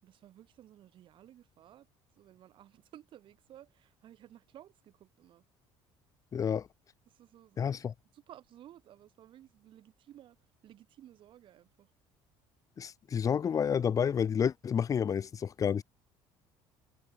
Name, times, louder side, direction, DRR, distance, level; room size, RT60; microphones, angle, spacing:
voice 1, 0.0-1.9 2.2-5.4 6.3-6.6 7.1-7.8 8.1-10.4 10.6-11.9, right 12 dB, 55° right, 7.7 m, -56 dB
voice 2, 6.3-6.7 7.6-7.9 12.8-15.8, left 7 dB, 35° left, 1.1 m, -30 dB
cardioid pair, 120°, 10 cm